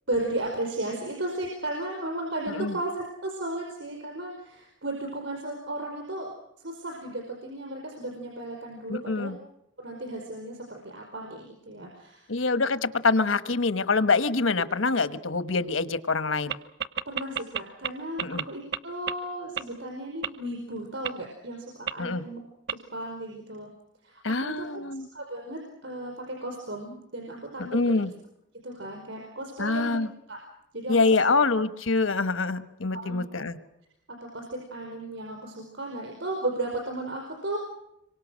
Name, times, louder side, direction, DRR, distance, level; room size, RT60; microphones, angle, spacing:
voice 1, 0.1-9.3 9.8-12.3 14.7-14.8 17.0-22.4 22.7-23.7 24.0-28.0 28.6-30.0 30.3-30.4 30.7-31.1 32.9-33.2 34.2-37.6, right 1 dB, 70° right, 2 dB, 5.0 m, -35 dB
voice 2, 8.9-9.3 12.3-16.6 18.2-18.4 22.0-22.2 24.2-25.1 27.7-28.1 29.6-30.1 30.9-33.6, left 3 dB, 90° left, 12 dB, 1.2 m, -25 dB
sound 1, 16.5-16.6 16.8-17.9 18.2-18.4 18.7-18.8 19.1-19.2 19.6-19.7 20.2-20.3 21.0-21.1 21.9-22.0 22.7-22.8, right 8 dB, 55° right, 1.0 m, -28 dB
26.5 x 24.0 x 6.3 m, 0.85 s
head